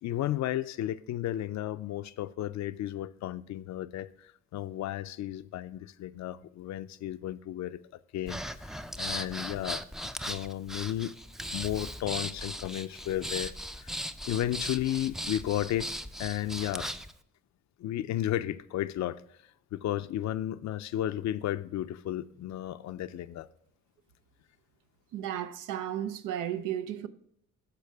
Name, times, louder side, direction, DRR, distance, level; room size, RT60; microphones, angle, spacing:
voice 1, 0.0-11.1 11.5-15.9 16.2-16.9 17.8-19.2 19.7-23.5, left 13 dB, 65° left, 0.5 m, -34 dB
Breathing, 8.3-17.1, equal, ahead, 0.4 m, -38 dB
voice 2, 25.1-27.1, right 10 dB, 90° right, 0.7 m, -34 dB
13.5 x 4.7 x 3.5 m
cardioid pair, 90°, 30 cm